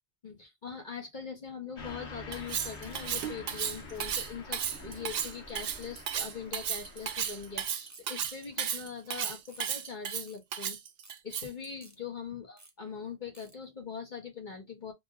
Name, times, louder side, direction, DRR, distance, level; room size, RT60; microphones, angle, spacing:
voice 1, 0.2-10.8 11.2-14.9, left 6 dB, 40° left, 1.6 m, -42 dB
Car passing by / Truck, 1.8-7.7, left 2 dB, 70° left, 1.6 m, -47 dB
Cutlery silverware, 2.3-11.7, right 9 dB, 65° right, 0.8 m, -34 dB
sound 1, 7.9-8.2 8.7-8.9 9.5-9.7 10.3-10.4 11.0-11.2 11.8-12.0 12.6-12.7 13.3-13.5, right 2 dB, 15° right, 0.9 m, -55 dB
4.0 x 2.8 x 3.4 m
omnidirectional pair, 1.2 m